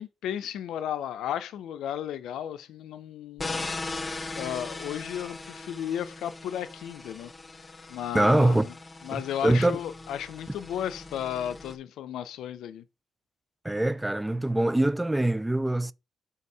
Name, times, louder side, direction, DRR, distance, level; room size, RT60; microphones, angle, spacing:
voice 1, 0.0-3.7 4.3-7.3 7.9-8.7 9.0-12.8, left 10 dB, 75° left, 0.6 m, -34 dB
sound 1, 3.4-11.8, left 3 dB, 30° left, 0.8 m, -39 dB
voice 2, 8.1-8.7 9.1-9.8 13.6-15.9, right 1 dB, 10° right, 0.4 m, -23 dB
5.3 x 4.2 x 4.8 m
hypercardioid pair, 50°, 0 cm